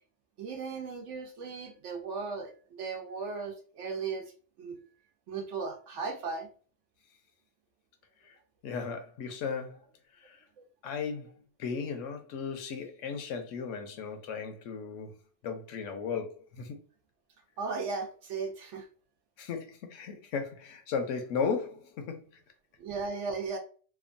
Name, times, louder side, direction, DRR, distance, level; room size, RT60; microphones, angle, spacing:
voice 1, 0.4-4.3 4.6-4.8 5.3-6.5 17.6-18.9 22.8-23.6, right 4 dB, 75° right, 1.0 m, -36 dB
voice 2, 8.6-9.8 10.2-10.4 10.8-15.2 15.4-16.8 19.4-22.3, left 5 dB, 80° left, 1.0 m, -36 dB
2.9 x 2.2 x 2.5 m
omnidirectional pair, 1.3 m